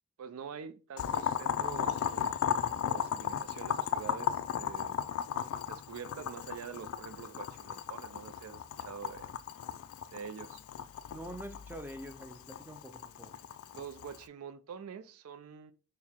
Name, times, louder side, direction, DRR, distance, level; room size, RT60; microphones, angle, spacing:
voice 1, 0.2-2.4 2.8-5.1 5.7-9.3 10.1-10.6 13.7-15.7, right 7 dB, 90° right, 0.4 m, -46 dB
Boiling, 1.0-14.2, left 8 dB, 85° left, 0.3 m, -36 dB
voice 2, 11.1-13.3, right 1 dB, 10° right, 0.3 m, -45 dB
4.5 x 2.1 x 3.5 m
head